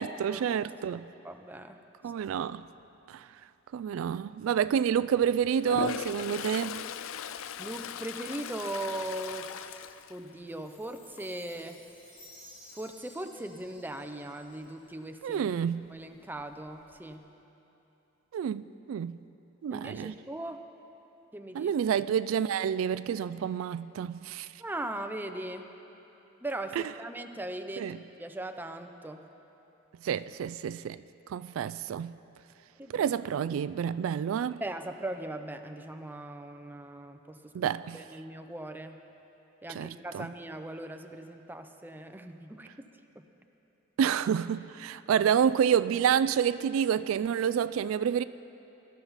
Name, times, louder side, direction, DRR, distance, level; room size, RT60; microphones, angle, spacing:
voice 1, 0.0-1.1 2.0-2.6 3.1-3.2 3.7-6.9 15.2-15.8 18.3-19.2 19.6-20.1 21.5-24.5 26.8-26.9 27.8-28.0 30.0-31.0 31.3-32.1 32.9-34.6 37.5-38.0 39.7-40.3 44.0-48.2, right 8 dB, 85° right, 0.3 m, -29 dB
voice 2, 0.9-1.8 7.6-11.8 12.7-15.5 15.9-17.3 19.7-20.7 21.3-21.7 24.6-25.7 26.4-27.9 28.2-29.2 32.8-33.1 34.6-39.0 39.6-42.9, right 1 dB, 10° right, 0.6 m, -39 dB
Toilet flush, 5.6-10.8 11.2-11.6 16.0-16.1 16.4-17.1, left 8 dB, 80° left, 0.4 m, -38 dB
Chime, 10.5-14.9, left 1 dB, 65° left, 4.0 m, -55 dB
20.0 x 13.0 x 4.1 m
head